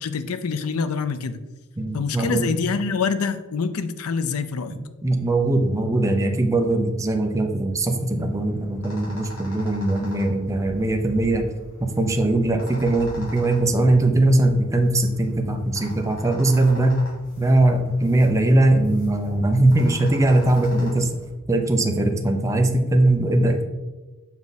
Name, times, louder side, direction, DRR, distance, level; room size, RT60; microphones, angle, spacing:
voice 1, 0.0-1.4 1.9-4.7, left 5 dB, 80° left, 11 dB, 0.5 m, -26 dB
voice 2, 1.8-2.5 5.0-11.4 11.8-17.0 17.4-21.1 21.5-23.6, right 2 dB, 15° right, 4 dB, 0.7 m, -20 dB
sound 1, 8.1-21.3, left 1 dB, 65° left, 2.3 m, -42 dB
7.2 x 4.7 x 4.1 m, 1.1 s
head